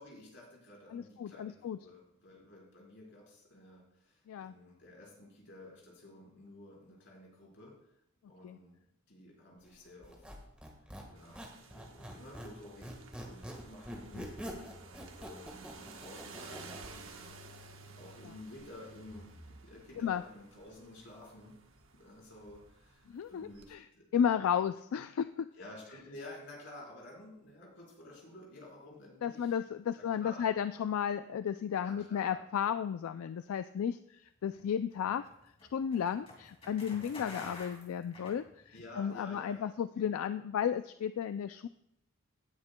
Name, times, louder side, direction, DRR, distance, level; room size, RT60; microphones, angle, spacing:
voice 1, 0.0-7.7 8.3-8.8 9.1-10.2 11.1-14.2 14.8-17.3 17.6-21.6 21.9-24.6 25.5-29.6 29.9-30.5 31.8-32.4 38.7-40.1, left 1 dB, 55° left, -3 dB, 4.0 m, -52 dB
voice 2, 0.9-1.8 4.3-4.5 8.4-8.6 14.1-14.3 20.0-20.2 23.1-23.8 24.1-25.5 29.2-35.3 35.7-41.7, left 8 dB, 80° left, 11 dB, 0.3 m, -33 dB
Squeak, 10.0-12.6 12.8-16.9, equal, 5° right, 1.4 m, -45 dB
sound 1, 11.2-23.7, right 3 dB, 65° right, 1.1 m, -53 dB
sound 2, 34.5-39.0, left 1 dB, 25° left, 2.3 m, -49 dB
17.0 x 9.6 x 2.2 m, 0.79 s
head